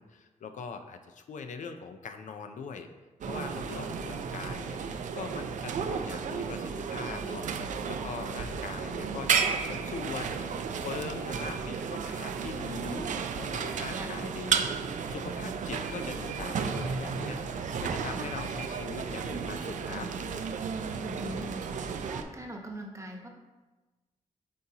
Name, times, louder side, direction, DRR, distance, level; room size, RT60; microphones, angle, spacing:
voice 1, 0.0-2.9 3.3-4.8 5.1-7.5 7.8-13.1 13.4-20.1, left 5 dB, 75° left, 7 dB, 0.5 m, -41 dB
sound 1, 3.2-22.2, right 6 dB, 75° right, 0.4 m, -33 dB
voice 2, 8.7-9.3 13.9-14.2 21.0-21.5 22.0-23.3, equal, 25° right, 1 dB, 1.0 m, -42 dB
8.4 x 4.0 x 2.8 m, 1.2 s
wide cardioid pair, 105°, 13 cm